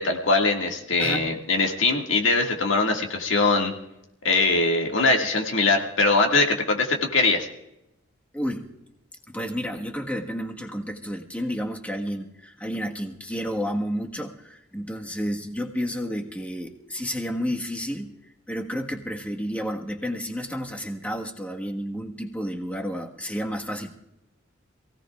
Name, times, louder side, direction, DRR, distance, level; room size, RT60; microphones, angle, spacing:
voice 1, 0.0-3.7 4.2-7.5, left 3 dB, 70° left, 1 dB, 2.0 m, -22 dB
voice 2, 1.0-1.3 8.3-8.7 9.3-18.2 18.5-23.9, equal, 10° left, 1 dB, 1.5 m, -31 dB
27.0 x 17.0 x 2.4 m, 0.87 s
head